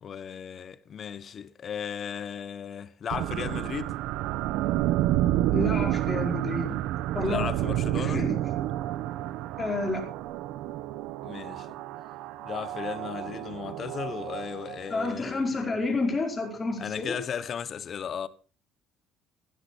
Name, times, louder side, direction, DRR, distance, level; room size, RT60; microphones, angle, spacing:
voice 1, 0.0-3.9 7.2-8.3 11.2-11.8 12.4-15.4 16.8-18.3, left 8 dB, 40° left, 1.1 m, -36 dB
sound 1, 3.1-15.1, right 13 dB, 85° right, 0.9 m, -30 dB
voice 2, 5.5-6.8 7.1-8.4 9.6-10.1 14.9-17.2, left 2 dB, 20° left, 4.8 m, -30 dB
16.0 x 12.0 x 4.5 m
cardioid pair, 125°, 0 cm